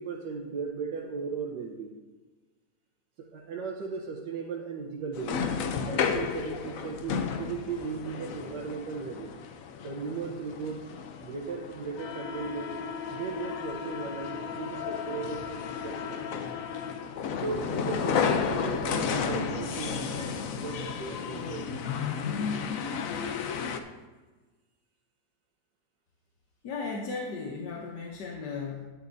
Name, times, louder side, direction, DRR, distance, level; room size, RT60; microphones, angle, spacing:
voice 1, 0.0-1.9 3.2-5.5 5.8-9.4 9.8-10.9 11.2-12.8 13.1-16.5 17.4-21.8, right 5 dB, 85° right, -1 dB, 1.5 m, -37 dB
sound 1, 5.1-23.8, left 6 dB, 65° left, 1.0 m, -33 dB
voice 2, 26.6-28.8, left 4 dB, 80° left, 0 dB, 1.5 m, -36 dB
11.5 x 9.4 x 2.7 m, 1.3 s
omnidirectional pair, 1.8 m